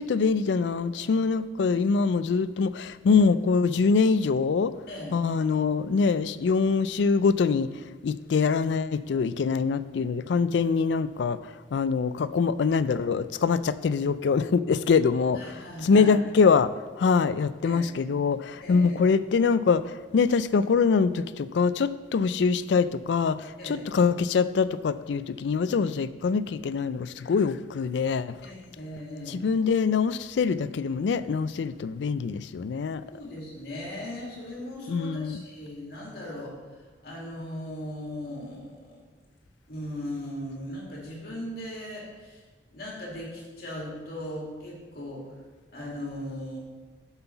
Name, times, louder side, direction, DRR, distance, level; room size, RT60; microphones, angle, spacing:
voice 1, 0.0-4.7 5.1-7.7 8.0-16.7 17.0-28.4 29.3-33.0 34.9-35.4, left 5 dB, 75° left, 15 dB, 0.4 m, -24 dB
voice 2, 15.3-16.1 17.6-17.8 18.6-19.0 23.6-23.8 28.4-29.4 33.1-39.0 39.7-42.4 42.7-45.2 45.7-46.6, left 1 dB, 60° left, -3 dB, 2.4 m, -38 dB
7.9 x 5.7 x 5.8 m, 1.3 s
head